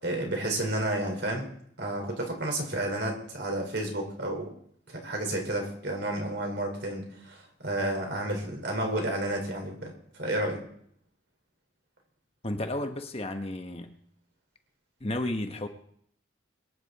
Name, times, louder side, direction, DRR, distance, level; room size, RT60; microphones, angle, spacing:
voice 1, 0.0-1.5 1.8-4.5 4.9-9.9 10.2-10.6, right 1 dB, 60° right, 2 dB, 4.5 m, -31 dB
voice 2, 12.4-13.9 15.0-15.7, left 1 dB, 30° left, 6 dB, 1.1 m, -32 dB
23.0 x 9.8 x 4.2 m, 0.65 s
head